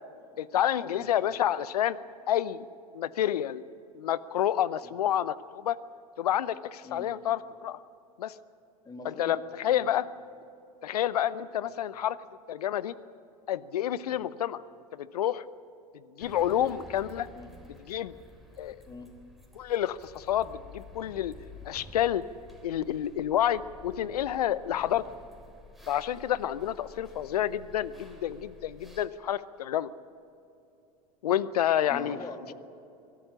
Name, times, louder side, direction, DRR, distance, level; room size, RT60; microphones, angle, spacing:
voice 1, 0.4-2.0 2.3-2.6 2.9-3.6 3.9-5.8 6.2-7.8 8.2-8.3 9.0-10.0 10.8-12.2 12.5-12.9 13.5-14.6 14.9-15.4 16.2-17.3 17.9-18.1 18.6-18.8 19.5-21.3 21.6-22.2 22.6-25.0 25.9-29.9 31.2-32.2, left 11 dB, 75° left, 18 dB, 0.7 m, -29 dB
voice 2, 8.8-9.4 9.7-9.9 11.6-11.8 14.1-14.3 16.6-16.7 17.3-17.5 18.9-19.1 31.9-32.5, left 3 dB, 20° left, 5 dB, 2.5 m, -44 dB
sound 1, 16.2-29.1, left 1 dB, ahead, 3.3 m, -51 dB
23.0 x 12.5 x 9.9 m, 2.7 s
figure-of-eight pair, 85°, 20 cm